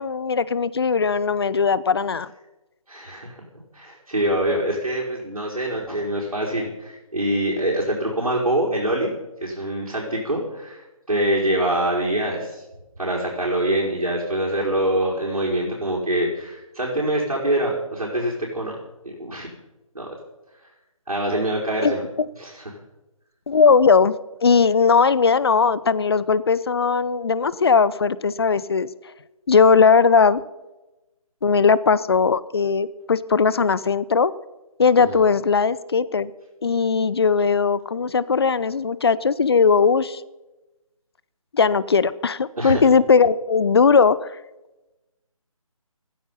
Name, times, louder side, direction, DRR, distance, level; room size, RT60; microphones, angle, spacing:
voice 1, 0.0-2.3 21.8-21.9 23.5-24.2 24.4-28.9 29.5-30.4 31.4-34.3 34.8-36.3 36.6-40.2 41.5-44.3, left 5 dB, 45° left, 19 dB, 0.8 m, -18 dB
voice 2, 2.9-3.4 3.7-12.6 13.0-18.8 19.0-19.5 19.9-20.1 21.1-22.1 22.4-22.6 35.0-35.2 42.6-42.8, right 1 dB, 85° right, -4 dB, 5.1 m, -25 dB
16.0 x 14.5 x 5.7 m, 1.0 s
figure-of-eight pair, 155°, 18 cm